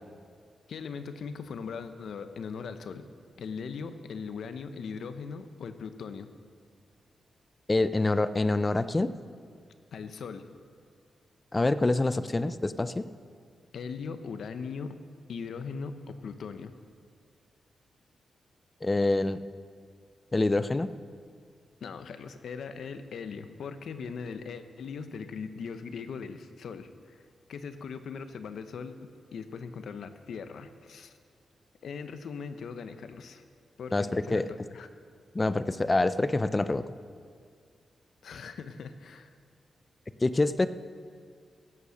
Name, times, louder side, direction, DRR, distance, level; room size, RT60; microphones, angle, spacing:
voice 1, 0.7-3.1 3.4-6.3 9.9-10.5 13.7-15.0 15.3-16.7 21.8-31.1 31.8-33.4 33.8-34.4 34.7-34.9 38.2-39.3, left 5 dB, 70° left, 9 dB, 0.8 m, -40 dB
voice 2, 7.7-9.1 11.5-13.1 18.8-19.4 20.3-20.9 33.9-34.5 35.3-36.8 40.2-40.7, left 2 dB, 15° left, 13 dB, 0.4 m, -26 dB
16.0 x 8.5 x 6.4 m, 2.1 s
wide cardioid pair, 170°, 0 cm